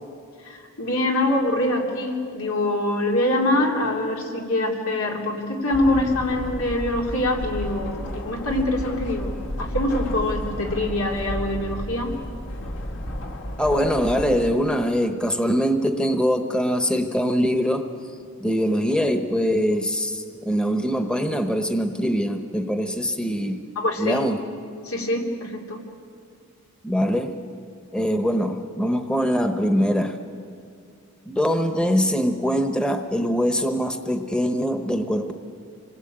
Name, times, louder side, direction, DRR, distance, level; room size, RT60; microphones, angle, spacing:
voice 1, 0.5-9.3 9.6-12.2 23.8-24.3 24.8-25.8, left 1 dB, 90° left, 0 dB, 3.6 m, -24 dB
sound 1, 5.7-14.6, left 1 dB, 60° left, 1.6 m, -32 dB
voice 2, 13.6-17.9 18.4-23.6 24.0-24.4 26.8-27.3 27.9-30.2 31.3-35.3, equal, 5° left, 6 dB, 1.0 m, -23 dB
26.5 x 20.0 x 8.9 m, 2.3 s
head